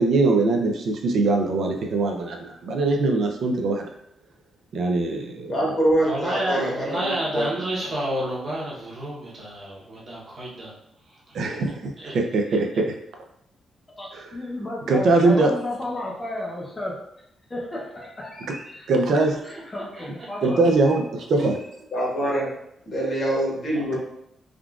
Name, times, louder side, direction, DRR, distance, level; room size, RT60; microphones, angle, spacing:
voice 1, 0.0-3.9 4.7-5.7 11.3-12.9 14.1-14.2 14.9-15.5 18.9-19.4 20.4-21.6, right 3 dB, 55° right, 2 dB, 0.4 m, -22 dB
voice 2, 5.5-7.6 21.4-21.5 21.9-22.5 22.9-24.0, right 1 dB, 35° left, -4 dB, 1.0 m, -24 dB
voice 3, 6.0-10.7 11.1-11.4 12.0-12.1 19.5-19.6 20.0-20.1, right 1 dB, 30° right, -6 dB, 0.9 m, -30 dB
voice 4, 14.0-17.0 17.5-18.9 19.4-21.0 21.4-21.5 22.0-22.1, left 1 dB, 15° left, -2 dB, 0.6 m, -33 dB
3.6 x 2.4 x 2.3 m, 0.76 s
wide cardioid pair, 180°, 0 cm